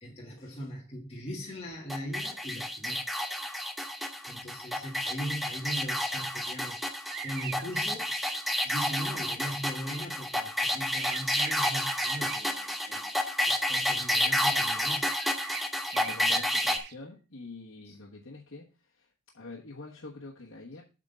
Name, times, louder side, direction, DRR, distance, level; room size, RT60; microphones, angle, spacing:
voice 1, 0.0-3.0 4.3-8.1 8.6-13.1 13.4-15.1 16.0-16.4 17.8-17.9, equal, 30° left, -3 dB, 1.6 m, -39 dB
sound 1, 1.9-16.8, left 1 dB, ahead, 0.6 m, -30 dB
sound 2, 7.1-8.7 10.9-13.0 13.4-13.6 15.1-17.0, right 9 dB, 50° right, 0.5 m, -41 dB
voice 2, 15.9-20.8, left 3 dB, 65° left, -4 dB, 1.3 m, -46 dB
8.2 x 3.8 x 6.7 m, 0.32 s
head